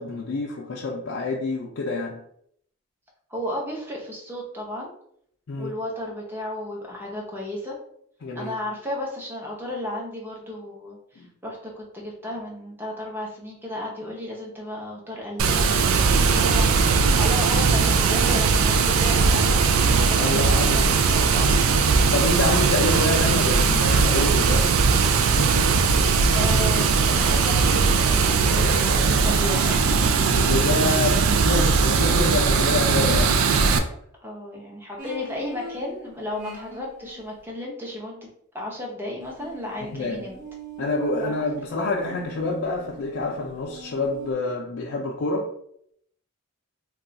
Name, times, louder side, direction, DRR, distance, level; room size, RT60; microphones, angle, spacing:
voice 1, 0.0-2.2 5.5-5.7 8.2-8.5 11.2-11.3 20.2-21.2 22.1-24.7 28.6-28.8 29.1-29.2 30.3-33.9 39.9-40.2 40.8-45.5, left 2 dB, 60° left, -3 dB, 0.4 m, -27 dB
voice 2, 3.3-4.9 5.6-7.7 8.3-21.5 26.4-30.1 34.2-38.3 38.5-40.4 41.1-41.4, left 1 dB, 10° right, -2 dB, 0.7 m, -34 dB
Water, 15.4-33.8, right 4 dB, 70° right, 0.3 m, -19 dB
sound 1, 35.0-37.2 39.3-44.3, right 1 dB, 40° right, 0.9 m, -42 dB
2.3 x 2.3 x 3.9 m, 0.69 s
head